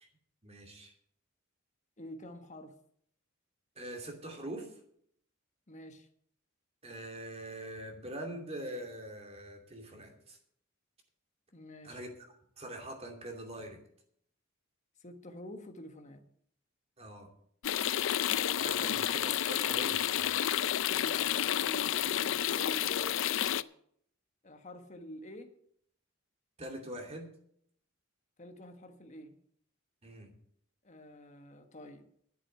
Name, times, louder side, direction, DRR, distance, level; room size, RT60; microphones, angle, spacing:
voice 1, 0.4-0.9 3.8-4.7 6.8-10.4 11.8-12.1 12.6-13.8 17.0-17.3 18.6-20.4 26.6-27.3 30.0-30.3, right 1 dB, 30° right, 3 dB, 2.6 m, -43 dB
voice 2, 2.0-2.7 5.7-6.1 11.5-12.0 15.0-16.2 18.7-19.0 20.9-23.6 24.4-25.5 28.4-29.4 30.8-32.0, left 1 dB, 35° left, 6 dB, 1.5 m, -48 dB
sound 1, 17.6-23.6, left 11 dB, 65° left, 0.4 m, -30 dB
11.5 x 8.1 x 7.7 m, 0.66 s
head